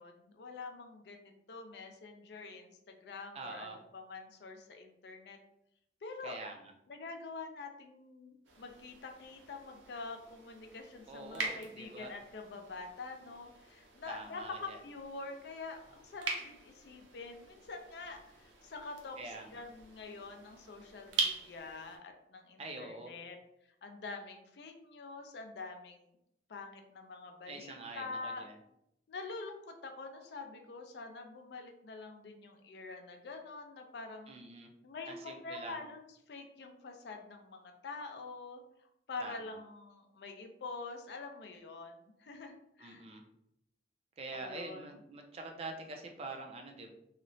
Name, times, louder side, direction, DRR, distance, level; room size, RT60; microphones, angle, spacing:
voice 1, 0.0-5.4 6.0-6.4 6.9-23.4 23.8-26.1 26.5-28.5 29.1-34.3 34.8-36.0 36.3-38.6 39.1-43.0 44.3-44.8, left 3 dB, 60° left, 4 dB, 0.4 m, -46 dB
voice 2, 3.3-3.8 6.2-6.6 11.1-12.1 14.1-14.8 19.2-19.6 22.6-23.1 27.5-28.5 34.3-34.7 35.1-35.8 39.2-39.5 42.8-43.2 44.2-46.9, right 2 dB, 35° right, 3 dB, 0.3 m, -45 dB
sound 1, 8.4-22.0, right 4 dB, 85° right, 0.5 m, -43 dB
2.8 x 2.0 x 2.6 m, 0.79 s
head